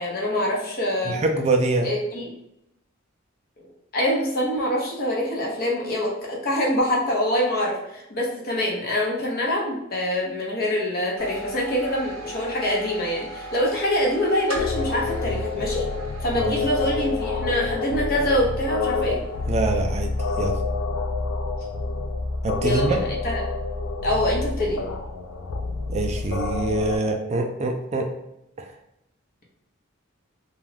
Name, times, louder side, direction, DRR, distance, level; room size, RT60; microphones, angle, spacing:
voice 1, 0.0-1.2 1.8-2.3 3.9-15.8 16.2-19.2 22.6-23.4 24.0-24.8, left 1 dB, 50° left, -3 dB, 0.8 m, -25 dB
voice 2, 1.0-1.9 16.5-16.6 19.5-20.1 20.4-20.6 22.4-23.0 25.9-28.1 28.6-28.7, right 2 dB, 30° right, 3 dB, 0.3 m, -24 dB
sound 1, 11.2-20.8, right 1 dB, 80° right, 0.6 m, -40 dB
sound 2, 14.5-27.0, left 3 dB, 85° left, 0.4 m, -28 dB
2.4 x 2.2 x 3.2 m, 0.82 s
head